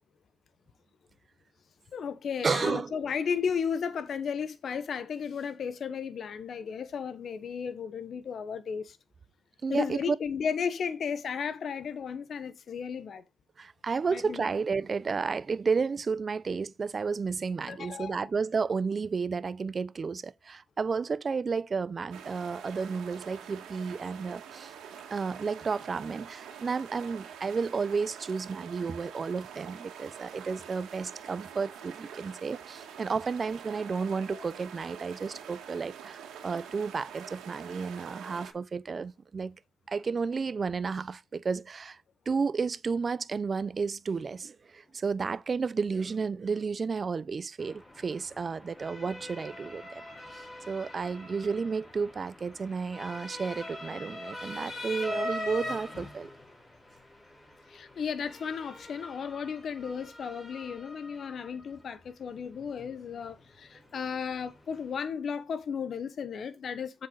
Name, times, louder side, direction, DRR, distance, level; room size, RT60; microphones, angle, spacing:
voice 1, 1.9-9.0 9.7-13.2 14.1-14.5 17.7-18.3 34.3-34.4 55.9-56.1 57.7-67.1, left 6 dB, 55° left, 1.1 m, -34 dB
voice 2, 2.4-2.9 9.6-10.2 13.6-24.7 25.1-39.6 39.9-42.0 42.3-50.0 50.3-56.3, right 5 dB, 35° right, 0.6 m, -32 dB
sound 1, 22.1-38.5, right 8 dB, 85° right, 1.9 m, -46 dB
Motor vehicle (road) / Siren, 47.6-65.0, left 1 dB, 20° left, 4.5 m, -43 dB
7.5 x 6.4 x 3.9 m
cardioid pair, 90°, 0 cm